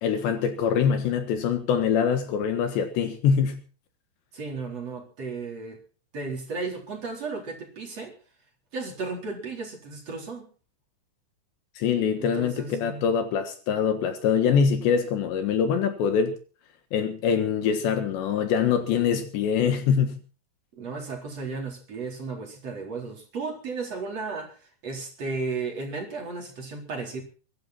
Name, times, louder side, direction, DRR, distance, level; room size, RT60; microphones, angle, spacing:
voice 1, 0.0-3.6 11.8-16.3 16.9-20.2, left 7 dB, 70° left, 3.6 m, -24 dB
voice 2, 4.3-5.8 6.1-8.1 8.7-10.5 12.1-13.1 20.8-27.2, right 4 dB, 35° right, 4.9 m, -34 dB
23.0 x 12.0 x 4.4 m
omnidirectional pair, 5.6 m